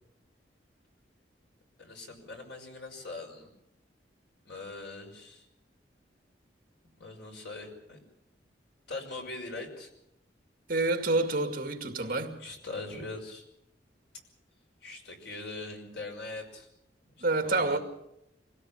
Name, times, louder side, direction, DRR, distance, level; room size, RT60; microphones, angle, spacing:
voice 1, 1.8-3.5 4.5-5.5 7.0-8.0 8.9-9.9 12.0-12.1 12.4-13.4 14.8-16.7 17.5-17.8, left 3 dB, 70° left, 5.8 m, -41 dB
voice 2, 10.7-12.4 17.2-17.8, right 2 dB, 50° right, 2.3 m, -28 dB
25.0 x 17.5 x 7.2 m
head